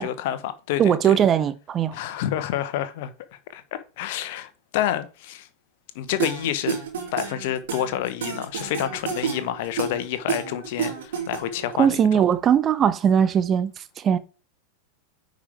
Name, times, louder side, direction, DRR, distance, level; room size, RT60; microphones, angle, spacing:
voice 1, 0.0-1.2 1.9-3.1 3.5-3.6 4.0-5.5 5.9-6.8 7.1-12.3, left 11 dB, 50° left, 1.0 m, -28 dB
voice 2, 0.8-1.9 11.8-13.7 14.0-14.2, right 8 dB, 25° right, 0.7 m, -20 dB
sound 1, 6.2-11.7, right 8 dB, 60° right, 2.8 m, -30 dB
9.7 x 5.1 x 3.4 m
figure-of-eight pair, 90°, 0 cm